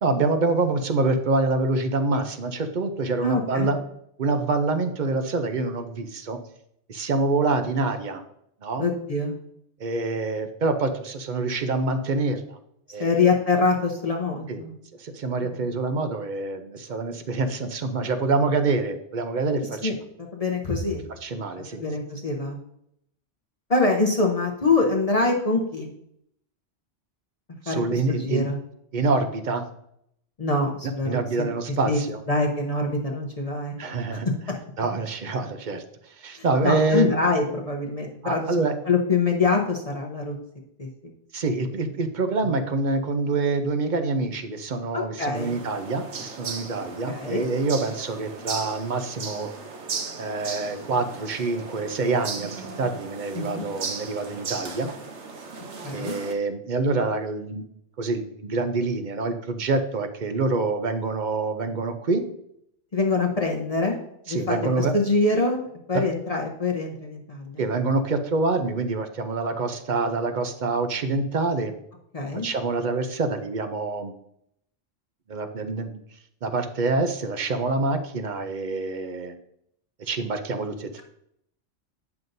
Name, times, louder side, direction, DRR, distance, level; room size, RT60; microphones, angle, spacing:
voice 1, 0.0-3.8 4.2-6.4 6.9-8.2 8.6-8.8 9.8-12.6 12.9-13.3 14.5-14.6 15.0-19.9 21.2-21.8 27.6-28.5 28.9-29.6 31.1-32.2 33.8-34.3 34.8-37.1 38.2-38.7 41.3-49.5 50.2-54.9 55.9-57.6 58.0-62.2 63.1-63.2 64.3-64.9 65.9-66.0 67.6-71.7 72.4-74.1 75.3-76.0 76.4-79.4 80.0-81.0, right 3 dB, 50° right, 8 dB, 0.7 m, -26 dB
voice 2, 3.2-3.7 8.8-9.4 13.0-14.7 15.4-15.6 19.8-19.9 20.3-21.0 21.6-22.6 23.7-25.9 27.7-28.6 30.4-31.2 31.9-32.0 32.3-33.8 34.1-34.2 36.4-40.4 40.8-40.9 44.9-45.6 47.1-47.5 53.3-53.7 55.8-56.1 62.9-64.0 64.3-67.6 72.1-72.5, left 3 dB, 35° left, 1 dB, 0.7 m, -25 dB
sound 1, 45.3-56.3, right 5 dB, 80° right, 1.2 m, -37 dB
9.2 x 5.8 x 2.6 m, 0.74 s
omnidirectional pair, 1.2 m